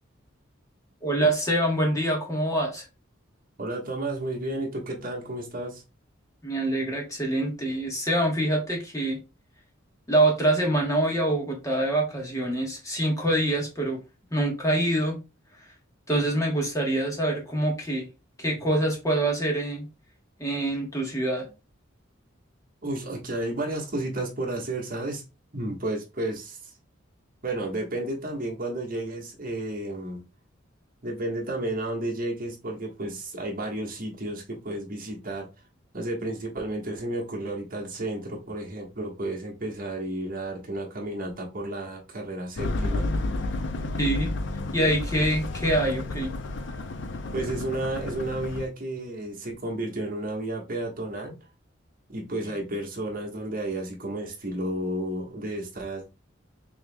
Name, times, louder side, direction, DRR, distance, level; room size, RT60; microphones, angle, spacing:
voice 1, 1.0-2.8 6.4-9.2 10.1-14.0 14.3-15.2 16.1-18.1 18.4-19.9 20.4-21.5 44.0-44.3 44.7-46.3, right 1 dB, 15° left, 1.3 m, -25 dB
voice 2, 3.6-5.8 22.8-25.2 25.5-26.6 27.4-30.2 31.0-35.5 35.9-43.1 47.3-51.4 52.1-56.0, right 1 dB, 45° right, 1.4 m, -32 dB
sound 1, 42.6-48.7, left 2 dB, 60° left, 0.6 m, -31 dB
5.9 x 2.9 x 2.3 m
head